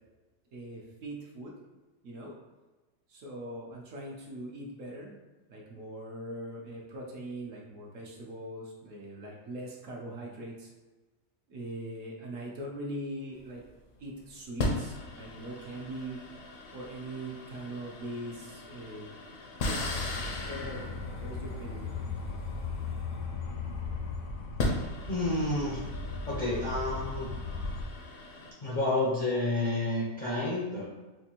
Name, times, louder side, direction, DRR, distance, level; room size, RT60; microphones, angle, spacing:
voice 1, 0.5-1.5 2.0-2.3 3.1-5.2 5.5-10.7 11.5-13.6 14.0-16.2 16.7-19.1 19.6-20.1 20.4-22.0, right 1 dB, 65° right, -2 dB, 0.9 m, -41 dB
sound 1, 13.4-13.6 14.6-23.6 24.4-28.5, left 2 dB, 65° left, 1.0 m, -38 dB
sound 2, 19.8-27.8, left 4 dB, 90° left, 1.1 m, -37 dB
voice 2, 25.1-25.8 26.3-27.3 28.6-30.9, left 2 dB, 45° left, -6 dB, 0.6 m, -30 dB
4.3 x 2.4 x 2.8 m, 1.2 s
omnidirectional pair, 1.6 m